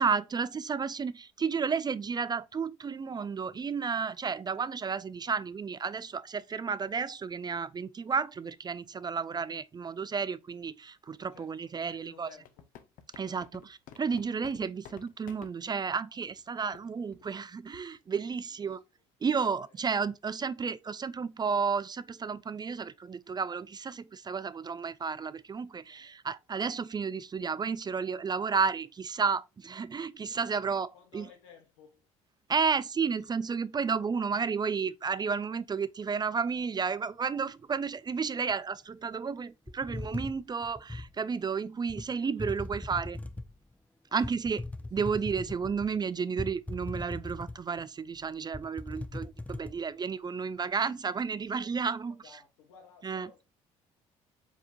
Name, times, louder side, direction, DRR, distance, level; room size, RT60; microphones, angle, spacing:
voice 1, 0.0-12.3 13.1-18.8 19.2-31.3 32.5-43.2 44.1-44.6 44.9-52.2 53.0-53.3, right 5 dB, 25° right, 0.4 m, -32 dB
voice 2, 11.3-12.6 13.2-13.6 18.2-18.8 19.3-19.7 25.9-26.1 30.3-30.5 30.9-32.1 41.9-43.1 44.1-44.7 52.1-53.5, left 6 dB, 85° left, 1.4 m, -58 dB
sound 1, 12.3-15.5 16.3-16.4 16.7-16.9 17.1-17.3 17.7-18.0, left 10 dB, 60° left, 0.6 m, -50 dB
sound 2, 39.7-41.1 41.9-42.0 42.4-43.6 44.2-45.9 46.4-47.8 48.2-48.3 48.5-49.7, left 2 dB, 10° left, 0.7 m, -39 dB
5.0 x 3.6 x 2.4 m
hypercardioid pair, 60°, 16 cm